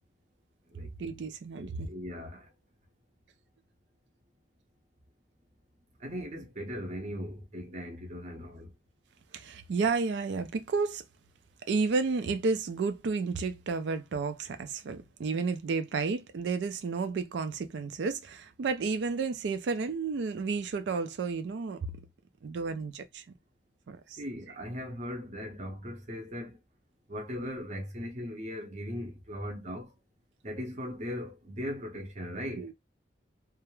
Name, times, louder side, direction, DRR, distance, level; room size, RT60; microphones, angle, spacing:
voice 1, 1.0-1.9 9.3-11.0 11.7-21.9 22.4-23.2 23.9-24.2 32.6-32.7, right 4 dB, 80° right, 0.4 m, -31 dB
voice 2, 1.6-2.5 6.0-8.7 24.2-26.6 27.1-29.9 30.4-32.7, equal, 40° right, 0.6 m, -38 dB
2.3 x 2.0 x 2.9 m
head